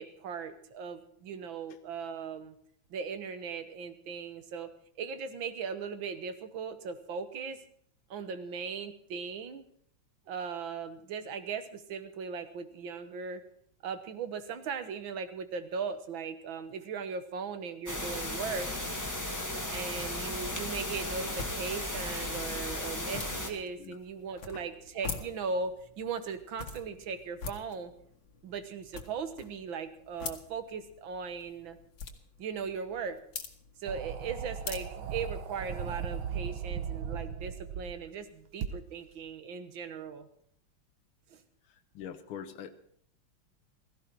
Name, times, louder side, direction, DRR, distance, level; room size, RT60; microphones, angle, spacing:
voice 1, 0.0-2.6 2.9-4.7 5.0-7.6 8.1-9.6 10.3-13.4 13.8-18.7 19.7-27.9 28.4-31.8 32.4-33.2 33.8-40.3 41.3-41.4, right 5 dB, 75° right, 10 dB, 1.9 m, -38 dB
sound 1, 17.9-23.5, left 1 dB, 10° left, 1.6 m, -35 dB
sound 2, 19.7-35.9, left 5 dB, 70° left, 2.1 m, -46 dB
sound 3, 33.9-38.0 38.6-38.7, right 7 dB, 90° right, 2.0 m, -37 dB
voice 2, 42.0-42.7, left 9 dB, 90° left, 8 dB, 1.7 m, -42 dB
16.5 x 15.0 x 4.6 m, 0.65 s
omnidirectional pair, 2.2 m